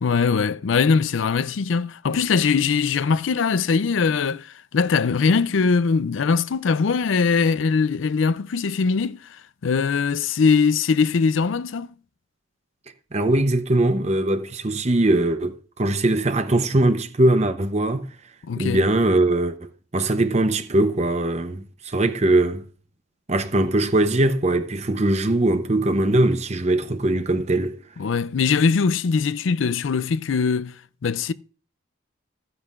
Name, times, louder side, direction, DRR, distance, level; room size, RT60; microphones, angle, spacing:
voice 1, 0.0-11.9 18.4-18.8 28.0-31.3, left 5 dB, 75° left, 0.4 m, -21 dB
voice 2, 13.1-18.1 18.6-22.6 23.3-27.8, right 2 dB, 35° right, 0.8 m, -21 dB
14.5 x 9.5 x 2.5 m
head